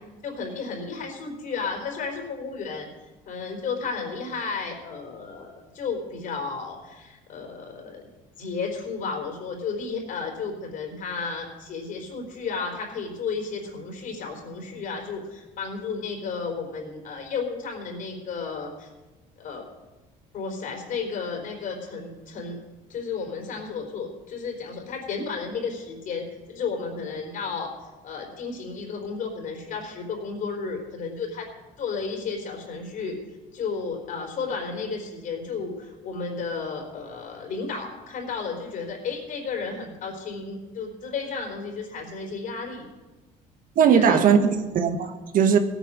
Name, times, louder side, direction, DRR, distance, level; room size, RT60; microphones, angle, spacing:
voice 1, 0.2-2.9 3.3-8.1 8.4-18.9 19.4-19.6 20.3-22.6 22.9-27.7 28.0-31.5 31.8-33.2 33.5-42.9 43.9-44.2, left 5 dB, 55° left, 2 dB, 4.1 m, -33 dB
voice 2, 43.8-45.6, right 7 dB, 60° right, 7 dB, 1.5 m, -19 dB
16.5 x 9.0 x 6.3 m, 1.2 s
cardioid pair, 95°, 16 cm